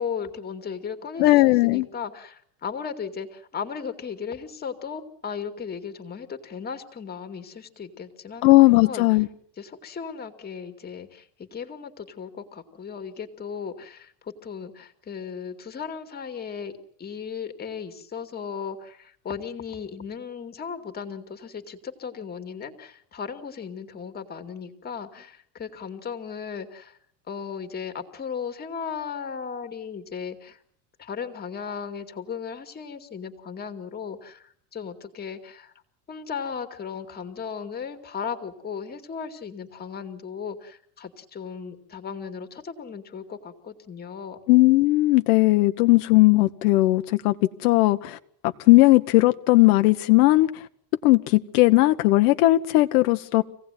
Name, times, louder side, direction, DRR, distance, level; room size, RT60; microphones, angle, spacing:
voice 1, 0.0-9.1 9.6-16.7 17.0-27.0 27.3-30.6 31.0-35.7 36.1-44.4, left 6 dB, 20° left, 8 dB, 2.4 m, -36 dB
voice 2, 1.2-1.9 8.4-9.3 44.5-47.3 47.6-48.2 48.7-50.5 51.0-53.4, left 19 dB, 65° left, 8 dB, 1.3 m, -17 dB
26.5 x 18.0 x 9.2 m, 0.66 s
supercardioid pair, 160°, 48 cm